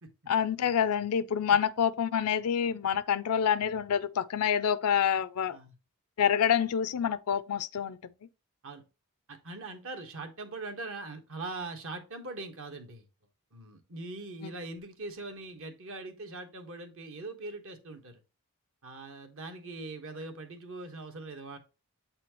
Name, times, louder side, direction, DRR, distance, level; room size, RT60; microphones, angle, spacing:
voice 1, 0.3-5.6 6.2-8.0, left 8 dB, 80° left, 0.4 m, -27 dB
voice 2, 9.3-13.1 13.5-18.2 18.8-21.6, right 2 dB, 65° right, 1.3 m, -41 dB
8.0 x 4.3 x 2.9 m
head